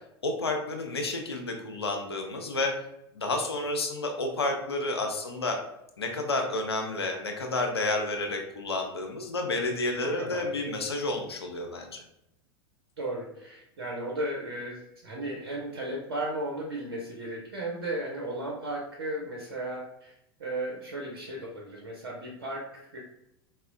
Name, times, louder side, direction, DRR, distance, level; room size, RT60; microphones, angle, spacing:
voice 1, 0.2-2.7 3.1-5.6 6.0-12.0, left 2 dB, 85° left, 3 dB, 0.5 m, -30 dB
voice 2, 10.0-10.8 13.0-20.1 20.4-23.0, right 1 dB, 70° right, -2 dB, 0.6 m, -35 dB
4.1 x 2.0 x 2.5 m, 0.81 s
figure-of-eight pair, 85°, 13 cm